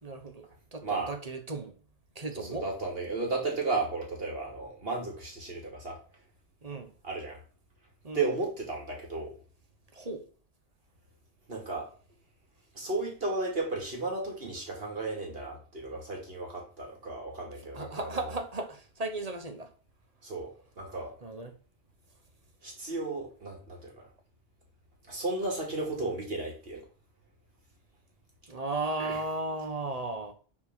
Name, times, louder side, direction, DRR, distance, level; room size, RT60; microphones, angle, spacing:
voice 1, 0.0-1.8 2.1-2.7 6.6-6.9 8.0-8.3 9.9-10.3 17.6-19.7 21.2-21.6 28.5-30.3, right 2 dB, 35° right, 1.2 m, -36 dB
voice 2, 2.4-6.0 7.0-7.4 8.1-9.3 11.5-11.9 12.7-18.2 20.2-21.1 22.6-24.0 25.1-26.8 29.0-29.1, right 3 dB, 60° right, 2.9 m, -34 dB
7.3 x 4.4 x 6.1 m
omnidirectional pair, 1.1 m